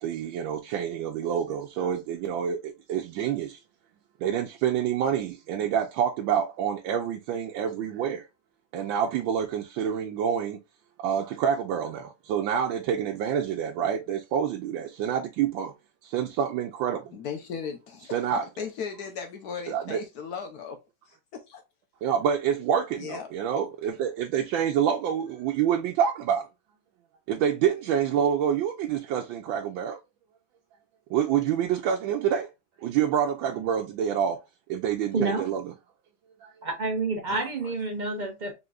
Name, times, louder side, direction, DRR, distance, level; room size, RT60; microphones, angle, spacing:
voice 1, 0.0-3.6 4.2-8.2 8.7-10.6 11.0-15.7 16.0-17.1 18.1-18.5 19.7-20.0 22.0-26.5 27.3-30.0 31.1-32.5 32.8-34.4 34.7-35.6 36.4-36.5, right 8 dB, 90° right, 1.4 m, -27 dB
voice 2, 17.1-18.2 18.6-20.8 21.1-21.6 23.0-23.3 37.3-37.8, left 6 dB, 65° left, 1.0 m, -37 dB
voice 3, 36.6-38.5, right 3 dB, 40° right, 0.6 m, -29 dB
4.0 x 3.6 x 2.3 m
omnidirectional pair, 2.0 m